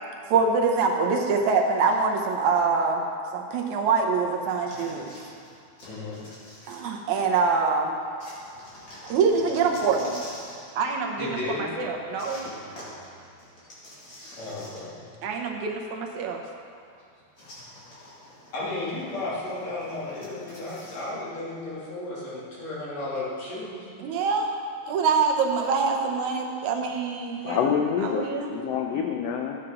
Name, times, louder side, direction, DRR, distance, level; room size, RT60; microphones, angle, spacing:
voice 1, 0.3-3.0 3.3-5.2 6.7-8.0 9.0-10.2 10.8-12.4 15.2-16.4 24.0-24.5 24.9-27.7 28.0-28.5, right 5 dB, 75° right, 2 dB, 2.3 m, -25 dB
sound 1, 4.7-7.4 8.2-10.7 12.2-15.1 15.4-15.5 17.4-21.1, left 1 dB, 40° left, 2.9 m, -46 dB
voice 2, 5.8-6.2 11.2-11.7 14.2-15.1 18.5-23.9, left 2 dB, 60° left, -8 dB, 4.0 m, -34 dB
voice 3, 27.4-29.6, left 7 dB, 75° left, 2 dB, 1.5 m, -27 dB
14.0 x 8.7 x 3.8 m, 2.3 s
omnidirectional pair, 3.4 m